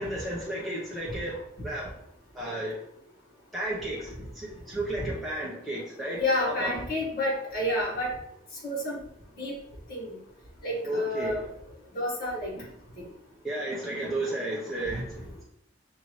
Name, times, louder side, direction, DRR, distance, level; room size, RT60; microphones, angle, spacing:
voice 1, 0.0-1.9 2.3-2.8 3.5-6.8 10.8-11.5 12.5-12.7 13.4-15.4, right 1 dB, ahead, -7 dB, 0.7 m, -33 dB
voice 2, 6.2-8.2 8.6-9.0 9.4-9.5 9.9-10.1 10.6-11.4 11.9-12.5 13.0-13.1 14.0-14.1 14.9-15.0, left 1 dB, 50° left, -4 dB, 1.6 m, -29 dB
6.1 x 2.6 x 3.1 m, 0.74 s
head